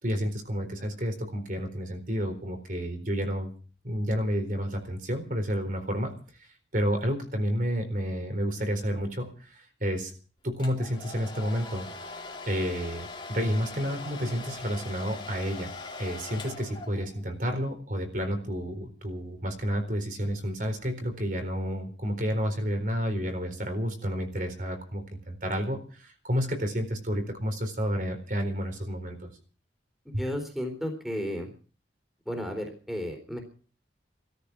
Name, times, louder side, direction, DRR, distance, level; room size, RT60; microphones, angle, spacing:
voice 1, 0.0-3.5 3.8-6.1 6.4-10.1 10.4-11.9 12.5-15.7 16.0-29.3 30.1-30.2, equal, 45° right, 6 dB, 4.2 m, -30 dB
Domestic sounds home sounds, 10.6-17.3, left 3 dB, 25° left, 2.9 m, -41 dB
voice 2, 30.1-31.5 32.3-33.4, equal, ahead, 4 dB, 3.6 m, -33 dB
17.0 x 13.5 x 6.1 m, 0.40 s
head